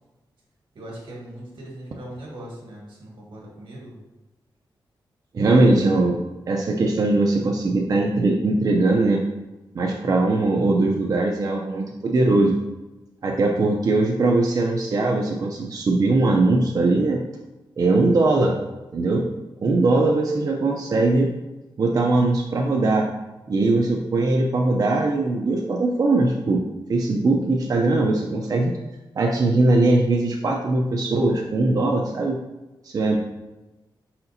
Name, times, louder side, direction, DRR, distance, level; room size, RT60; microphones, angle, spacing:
voice 1, 0.7-4.0, right 1 dB, 85° right, -3 dB, 1.5 m, -40 dB
voice 2, 5.3-6.2 6.5-9.2 9.7-12.5 13.2-17.2 17.8-18.6 18.9-19.3 19.6-21.3 21.8-23.1 23.5-26.6 26.9-28.7 29.2-32.4 32.8-33.2, right 2 dB, 45° right, 1 dB, 0.4 m, -20 dB
4.8 x 4.3 x 2.6 m, 1.1 s
wide cardioid pair, 130°, 8 cm